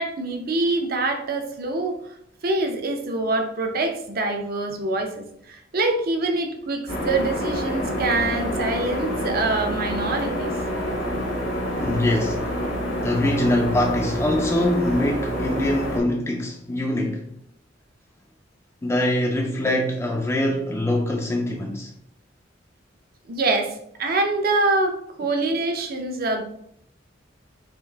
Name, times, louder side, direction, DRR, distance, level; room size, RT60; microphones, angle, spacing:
voice 1, 0.0-2.0 2.4-10.5 23.3-23.7 24.0-26.4, right 2 dB, 50° right, 0.6 m, -25 dB
sound 1, 6.9-16.0, equal, 75° left, 0.9 m, -27 dB
voice 2, 11.8-12.5 13.0-17.3 18.8-21.9, left 1 dB, 15° left, 0.3 m, -23 dB
3.7 x 2.6 x 3.4 m
head